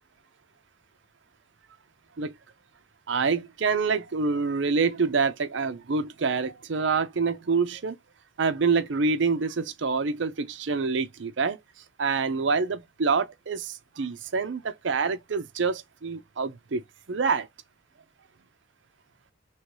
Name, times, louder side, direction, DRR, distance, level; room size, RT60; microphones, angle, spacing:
voice 1, 3.1-8.0 8.4-11.6 12.0-16.8 17.1-17.5, right 4 dB, 65° right, 0.6 m, -26 dB
3.1 x 3.0 x 4.6 m
head